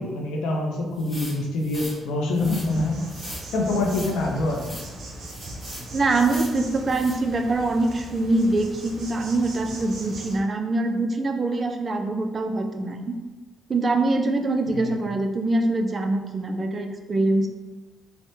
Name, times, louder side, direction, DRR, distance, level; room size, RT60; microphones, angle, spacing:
voice 1, 0.0-3.0 3.5-4.8 14.7-15.1, left 2 dB, 90° left, 0 dB, 0.5 m, -25 dB
sound 1, 1.0-2.0 2.3-2.7 3.1-3.5 3.8-4.1 4.5-4.9 5.2-5.9 6.2-6.6 6.9-7.2, equal, 15° left, 1.0 m, -39 dB
Insect, 2.3-10.4, right 1 dB, 70° right, 0.7 m, -39 dB
voice 2, 5.9-13.1 13.7-17.5, right 2 dB, 40° right, 5 dB, 0.3 m, -24 dB
3.2 x 2.1 x 2.7 m, 1.3 s
cardioid pair, 90°, 0 cm